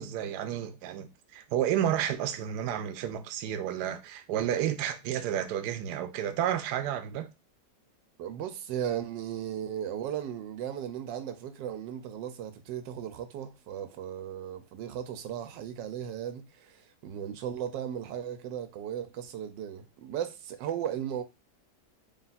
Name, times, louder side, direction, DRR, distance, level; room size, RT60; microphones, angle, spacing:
voice 1, 0.0-7.3, right 10 dB, 75° right, 1.0 m, -31 dB
voice 2, 8.2-21.2, right 10 dB, 90° right, 1.3 m, -36 dB
3.5 x 2.4 x 4.0 m
omnidirectional pair, 1.9 m